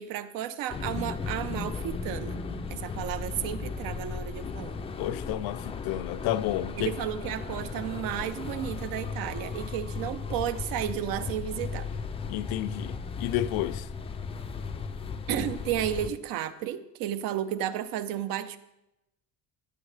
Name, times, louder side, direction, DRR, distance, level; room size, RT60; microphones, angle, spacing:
voice 1, 0.0-2.4 2.7-4.7 6.8-11.9 15.3-18.6, right 10 dB, 70° right, 0.8 m, -33 dB
sound 1, 0.7-16.1, left 4 dB, 15° left, 0.4 m, -36 dB
voice 2, 5.0-6.9 12.3-13.9, left 14 dB, 85° left, 0.6 m, -31 dB
16.5 x 8.2 x 3.3 m
cardioid pair, 175°, 35 cm